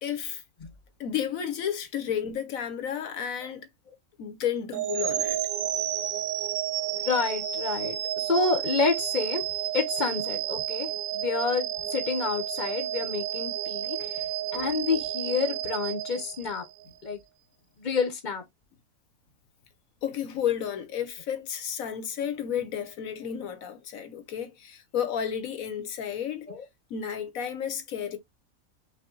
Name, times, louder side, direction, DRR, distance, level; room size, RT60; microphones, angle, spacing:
voice 1, 0.0-0.4 1.0-3.7 4.2-5.4 14.0-14.1 20.0-26.5 26.9-28.2, left 9 dB, 70° left, 1.3 m, -32 dB
sound 1, 4.7-16.8, right 11 dB, 90° right, 1.1 m, -31 dB
voice 2, 6.9-9.4 9.7-14.2 14.5-16.6 17.0-17.2 17.8-18.4 26.5-26.6, left 4 dB, 40° left, 0.9 m, -29 dB
5.8 x 2.2 x 3.7 m
omnidirectional pair, 1.5 m